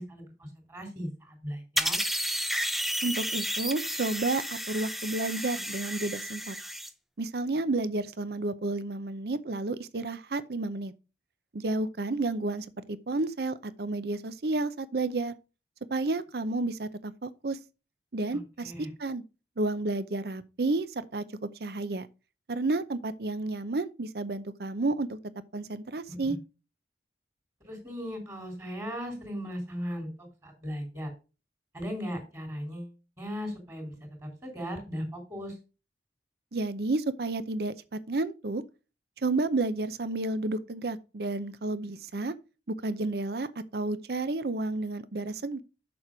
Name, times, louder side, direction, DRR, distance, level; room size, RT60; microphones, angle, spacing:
voice 1, 0.0-2.0 18.3-18.9 26.1-26.4 27.6-31.1 31.7-33.9 34.2-35.6, equal, 20° right, 2.9 m, -38 dB
sound 1, 1.8-6.9, equal, ahead, 0.5 m, -32 dB
voice 2, 3.0-6.5 7.2-10.9 11.5-15.3 15.9-17.6 18.1-19.2 19.6-20.9 21.1-21.2 21.6-22.1 22.5-25.2 25.5-26.4 36.5-37.7 38.1-38.6 39.2-42.3 42.8-45.6, right 2 dB, 60° right, 0.6 m, -31 dB
7.0 x 6.1 x 4.9 m
head